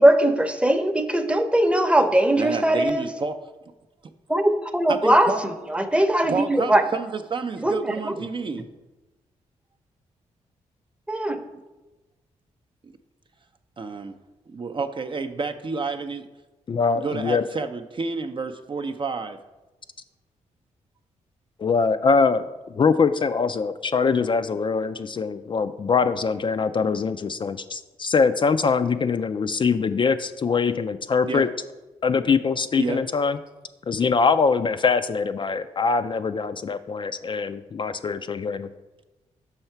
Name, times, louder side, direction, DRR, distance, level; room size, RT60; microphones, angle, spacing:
voice 1, 0.0-3.1 4.3-6.8 7.6-8.1 11.1-11.3, right 1 dB, 10° right, 8 dB, 0.7 m, -20 dB
voice 2, 2.4-3.4 4.9-5.4 6.3-8.7 13.8-14.2 14.5-16.3 16.9-19.4 31.2-31.4 32.8-33.0, right 4 dB, 40° right, 7 dB, 0.5 m, -29 dB
voice 3, 16.7-17.5 21.6-22.5 22.7-31.5 32.0-33.4 33.9-38.7, left 5 dB, 40° left, 10 dB, 0.3 m, -23 dB
5.6 x 5.6 x 4.5 m, 1.1 s
cardioid pair, 60°, 13 cm